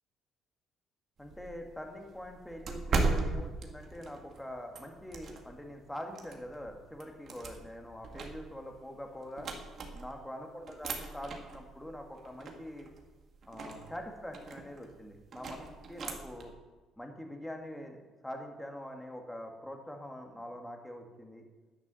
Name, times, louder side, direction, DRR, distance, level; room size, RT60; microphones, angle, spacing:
voice 1, 1.2-9.5 9.9-12.9 13.4-16.5 17.0-18.0 18.2-21.4, left 1 dB, 5° left, 3 dB, 1.5 m, -44 dB
sound 1, 1.2-5.7 6.1-10.3 10.6-16.5, right 3 dB, 35° right, 1.6 m, -38 dB
11.0 x 9.9 x 6.7 m, 1.2 s
cardioid pair, 175°, 0 cm